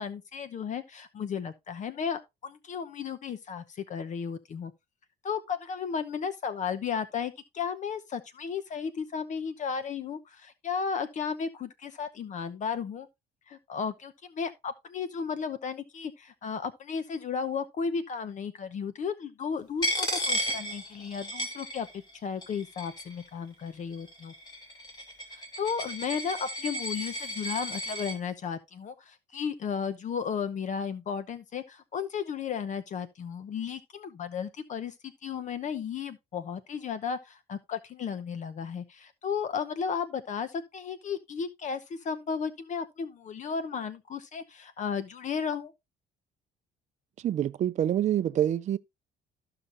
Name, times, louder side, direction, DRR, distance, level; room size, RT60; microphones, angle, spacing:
voice 1, 0.0-4.7 5.2-13.1 13.5-24.3 25.3-45.7, left 6 dB, 45° left, 0.9 m, -34 dB
Coin (dropping), 19.8-22.1 22.4-23.2 23.9-28.2, equal, 25° left, 2.5 m, -34 dB
voice 2, 47.2-48.8, right 11 dB, 45° right, 0.5 m, -26 dB
14.0 x 5.8 x 2.6 m
cardioid pair, 110°, 17 cm